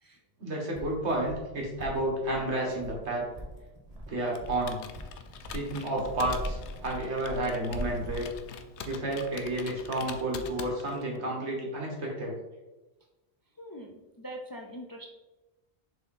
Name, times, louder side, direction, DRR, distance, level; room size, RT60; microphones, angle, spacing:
voice 1, 0.4-3.2 4.1-4.8 5.5-8.3 8.8-12.3, right 1 dB, 80° right, -1 dB, 1.9 m, -31 dB
sound 1, 0.7-8.4, equal, 35° right, 1.1 m, -41 dB
Computer keyboard, 4.3-11.2, left 7 dB, 85° left, 0.9 m, -45 dB
voice 2, 13.6-15.1, equal, 25° left, 1 dB, 0.5 m, -43 dB
6.7 x 3.8 x 4.2 m, 1.1 s
omnidirectional pair, 1.1 m